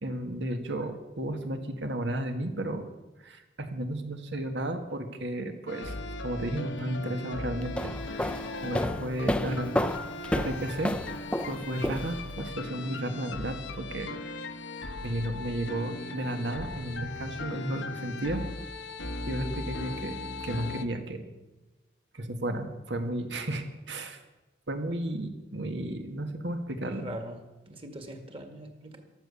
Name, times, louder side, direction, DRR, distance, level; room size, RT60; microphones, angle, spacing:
voice 1, 0.0-2.9 3.2-8.4 8.6-10.0 10.3-11.0 11.5-14.1 15.0-18.4 19.3-21.3 22.1-24.2 24.7-27.1, right 1 dB, 80° right, 6 dB, 1.8 m, -33 dB
sound 1, 5.7-20.8, left 2 dB, 85° left, 1.2 m, -38 dB
sound 2, 7.6-12.5, left 1 dB, 5° left, 0.5 m, -31 dB
voice 2, 26.8-29.0, equal, 30° right, 6 dB, 1.9 m, -42 dB
14.0 x 13.0 x 7.1 m, 1.1 s
head